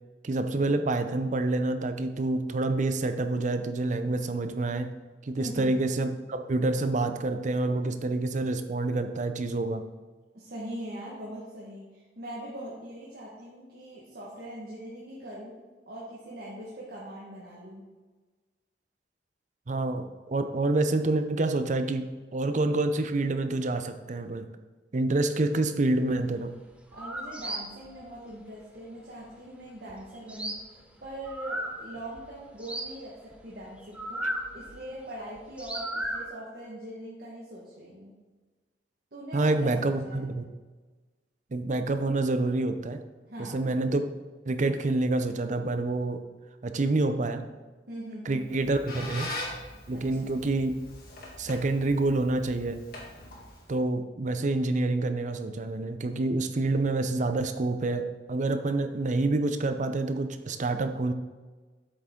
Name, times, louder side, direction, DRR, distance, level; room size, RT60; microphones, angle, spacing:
voice 1, 0.2-5.0 5.2-9.8 19.7-24.5 24.9-26.5 34.2-34.3 39.3-40.4 41.5-43.0 43.4-44.1 44.5-46.2 46.6-47.5 48.3-49.3 49.9-50.8 51.4-52.9 53.7-61.1, right 2 dB, 45° right, 9 dB, 0.6 m, -27 dB
voice 2, 5.3-5.7 10.3-15.5 15.9-17.9 26.9-34.2 34.5-38.1 39.1-40.3 43.3-43.7 47.9-48.4 49.9-50.3, right 1 dB, 60° right, -6 dB, 1.5 m, -42 dB
sound 1, 26.3-26.4 26.7-32.2 32.5-34.9 35.4-36.3, right 1 dB, 5° right, 0.7 m, -36 dB
Squeak, 48.4-53.8, left 1 dB, 55° left, 1.8 m, -42 dB
8.0 x 6.1 x 3.7 m, 1.3 s
head